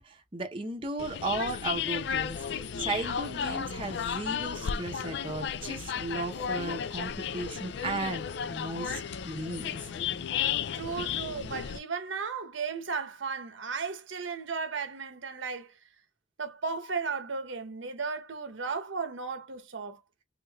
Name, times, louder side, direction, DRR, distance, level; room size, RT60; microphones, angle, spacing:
voice 1, 0.0-9.8, right 2 dB, 25° right, 0.7 m, -36 dB
sound 1, 1.0-11.8, left 8 dB, 60° left, 0.3 m, -33 dB
voice 2, 10.7-15.7 16.4-20.0, right 5 dB, 80° right, 0.9 m, -35 dB
3.6 x 3.3 x 2.3 m
head